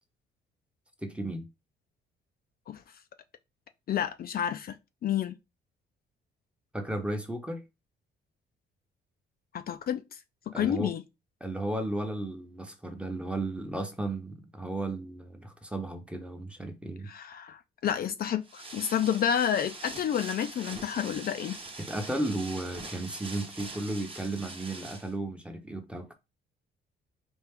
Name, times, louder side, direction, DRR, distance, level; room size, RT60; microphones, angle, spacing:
voice 1, 1.0-1.5 6.7-7.6 10.5-10.9 11.4-17.1 21.8-26.1, right 1 dB, 5° right, 0.8 m, -34 dB
voice 2, 3.9-5.3 9.5-10.2 10.5-11.0 17.1-21.6, left 9 dB, 50° left, 0.4 m, -30 dB
sound 1, 18.4-25.1, right 2 dB, 25° right, 1.0 m, -43 dB
4.3 x 2.4 x 3.6 m
cardioid pair, 90°, 20 cm